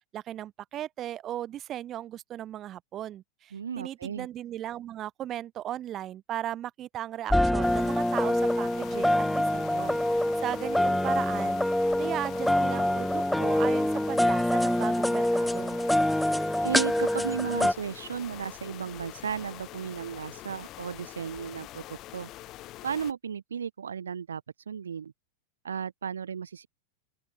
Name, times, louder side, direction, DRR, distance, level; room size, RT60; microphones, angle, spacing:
voice 1, 0.1-11.6 12.0-15.8, right 12 dB, 30° right, 1.1 m, -37 dB
voice 2, 3.5-4.3 16.6-22.3 22.8-25.1 25.6-26.7, right 7 dB, 70° right, 0.3 m, -35 dB
sound 1, 7.3-17.7, left 1 dB, ahead, 0.4 m, -25 dB
sound 2, 7.6-23.1, left 16 dB, 35° left, 0.9 m, -45 dB
open air
figure-of-eight pair, 90°, 0 cm